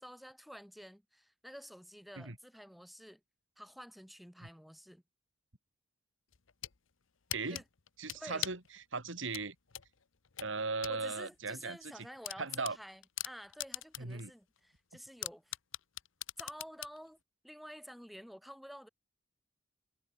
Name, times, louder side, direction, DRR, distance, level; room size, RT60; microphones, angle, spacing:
voice 1, 0.0-3.2 3.6-5.0 7.5-7.6 8.1-8.5 10.9-15.6 16.4-17.2 17.4-18.9, equal, ahead, 3.9 m, -50 dB
sound 1, 6.3-6.8 7.3-8.7 9.3-11.0 11.3-11.4 11.8-11.9 12.2-14.2 14.6-14.7 15.2-17.0, left 14 dB, 75° left, 1.0 m, -41 dB
voice 2, 8.0-8.6 8.9-9.5 10.4-12.1 12.4-12.8 14.0-14.3, right 3 dB, 70° right, 2.9 m, -38 dB
head